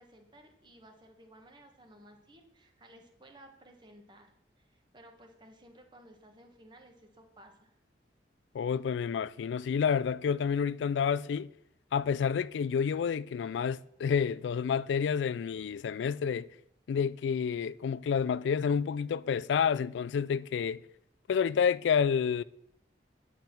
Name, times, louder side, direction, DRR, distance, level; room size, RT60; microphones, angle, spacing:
voice 1, 0.0-7.7, right 1 dB, 25° right, 1.3 m, -56 dB
voice 2, 8.5-11.5 11.9-16.5 16.9-20.8 21.3-22.4, left 7 dB, 85° left, 0.3 m, -29 dB
9.1 x 5.6 x 5.9 m
head